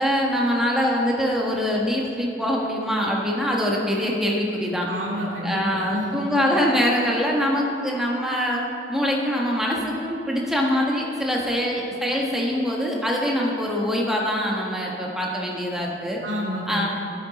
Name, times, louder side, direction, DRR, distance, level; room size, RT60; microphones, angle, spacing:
voice 1, 0.0-4.9 5.4-8.6 8.9-16.2 16.7-16.9, equal, ahead, -2 dB, 1.2 m, -24 dB
voice 2, 4.8-6.3 16.2-16.9, equal, 90° right, -4 dB, 2.4 m, -29 dB
12.0 x 8.7 x 4.1 m, 2.8 s
head